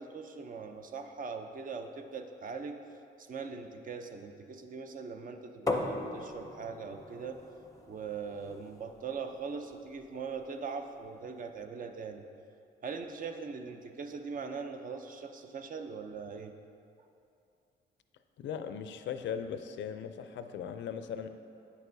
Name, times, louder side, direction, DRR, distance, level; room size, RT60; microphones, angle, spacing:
voice 1, 0.0-2.8 3.2-7.4 7.9-12.2 12.8-16.5, right 5 dB, 45° right, 6 dB, 0.5 m, -41 dB
sound 1, 5.7-11.3, left 2 dB, 15° left, 0.6 m, -40 dB
voice 2, 18.4-21.3, left 7 dB, 70° left, 9 dB, 0.4 m, -38 dB
8.5 x 6.4 x 2.7 m, 2.6 s
cardioid pair, 90°, 20 cm